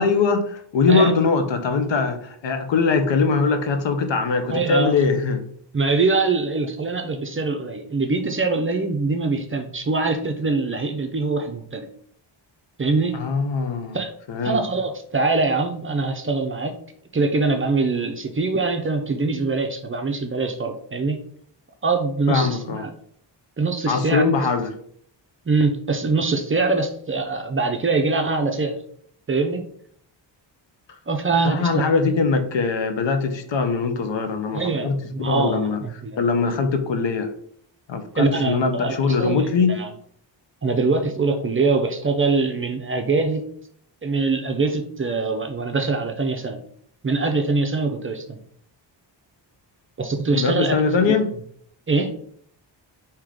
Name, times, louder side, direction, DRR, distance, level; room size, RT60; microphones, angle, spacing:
voice 1, 0.0-5.4 13.1-14.0 14.3-14.6 22.3-22.9 23.9-24.8 31.4-35.8 36.2-37.3 37.9-39.8 50.3-51.3, left 4 dB, 75° left, 0.7 m, -21 dB
voice 2, 4.5-5.0 5.7-11.9 12.8-13.2 13.9-14.1 14.4-16.8 17.1-21.2 21.8-22.9 23.6-24.3 25.5-28.7 29.3-29.6 31.1-31.8 34.5-36.2 38.2-39.9 40.6-43.5 44.0-46.6 47.0-48.4 50.0-51.2 51.9-52.1, right 3 dB, 30° right, 0.4 m, -23 dB
3.6 x 2.9 x 4.8 m
wide cardioid pair, 140°, 45 cm